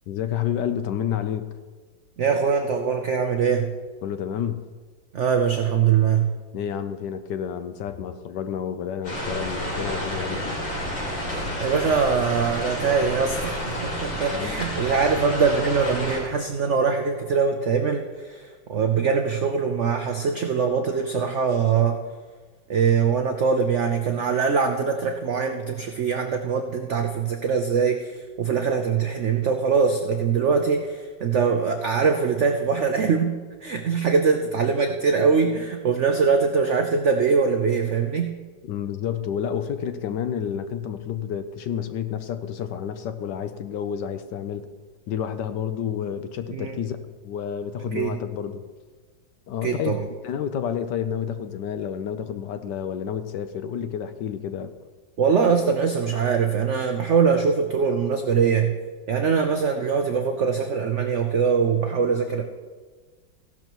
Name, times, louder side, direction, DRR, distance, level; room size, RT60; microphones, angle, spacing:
voice 1, 0.1-1.5 4.0-4.7 6.5-10.6 14.3-14.6 38.6-44.6 45.1-47.0 47.2-48.6 49.5-50.0 50.2-54.7, left 8 dB, 70° left, 10 dB, 1.2 m, -30 dB
voice 2, 2.2-3.7 5.1-6.3 11.3-22.0 22.7-38.4 46.5-46.8 47.9-48.2 49.6-50.1 55.2-58.7 59.1-62.4, right 6 dB, 75° right, 5 dB, 0.6 m, -22 dB
sound 1, 9.0-16.2, left 1 dB, 90° left, 3.8 m, -30 dB
15.5 x 12.0 x 3.0 m, 1.4 s
omnidirectional pair, 2.1 m